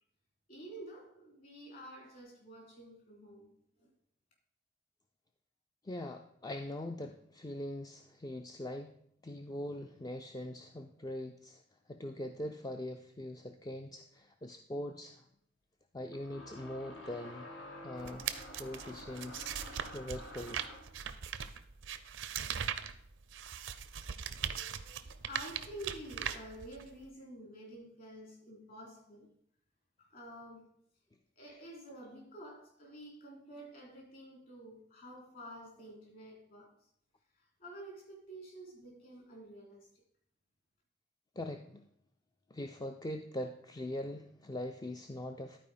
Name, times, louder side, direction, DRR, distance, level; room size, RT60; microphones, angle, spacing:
voice 1, 0.5-3.5 3.8-3.9 24.0-29.3 30.0-30.7 31.4-36.9 37.3-39.9, right 1 dB, 50° left, 3.4 m, -50 dB
voice 2, 5.8-8.9 9.2-11.6 11.9-15.2 15.9-17.5 17.8-18.3 18.6-19.5 19.9-20.6 41.4-41.9 42.5-45.6, left 1 dB, 20° left, 0.4 m, -42 dB
sound 1, 14.2-14.3 16.1-21.0, left 1 dB, 80° left, 1.9 m, -49 dB
sound 2, 18.0-27.0, right 8 dB, 75° right, 0.6 m, -40 dB
11.5 x 4.6 x 5.0 m
head